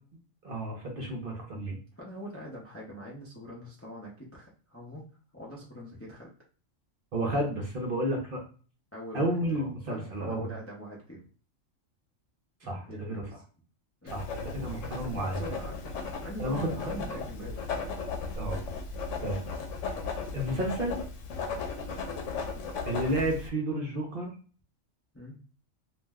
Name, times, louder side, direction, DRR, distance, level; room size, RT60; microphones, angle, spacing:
voice 1, 0.4-1.8 7.1-8.4 9.1-10.5 12.6-13.2 14.0-15.4 16.4-16.9 18.4-18.6 19.2-19.4 20.3-21.0 22.9-24.3, right 1 dB, 50° right, 0 dB, 0.7 m, -31 dB
voice 2, 2.0-5.1 5.3-6.3 8.9-9.3 9.6-11.2 12.9-13.3 14.0-14.2 14.8-15.7 16.2-17.8 19.1-19.6 25.1-25.4, equal, 20° left, -4 dB, 0.4 m, -43 dB
Writing, 14.1-23.5, left 4 dB, 75° left, 1.0 m, -36 dB
2.5 x 2.1 x 3.4 m, 0.38 s
omnidirectional pair, 1.3 m